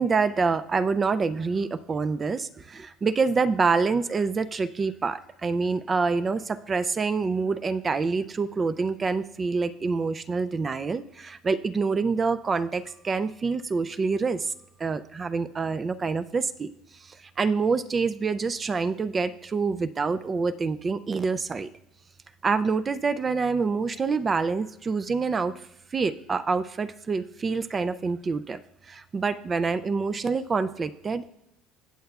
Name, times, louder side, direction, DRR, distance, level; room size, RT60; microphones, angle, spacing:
voice 1, 0.0-14.5 14.8-16.7 17.0-21.7 22.4-28.6 28.9-31.3, right 4 dB, 20° right, 13 dB, 0.3 m, -26 dB
18.0 x 7.5 x 2.3 m, 0.77 s
cardioid pair, 150°, 0 cm